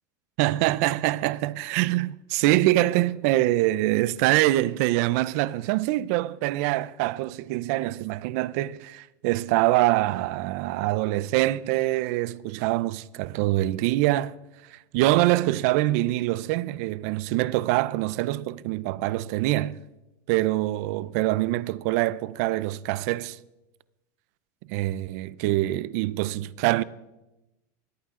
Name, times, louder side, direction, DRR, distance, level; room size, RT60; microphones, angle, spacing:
voice 1, 0.4-14.4 14.7-19.8 20.3-23.4 24.7-26.8, right 17 dB, 55° right, 0.5 m, -24 dB
20.5 x 15.0 x 3.7 m
supercardioid pair, 170°, 10 cm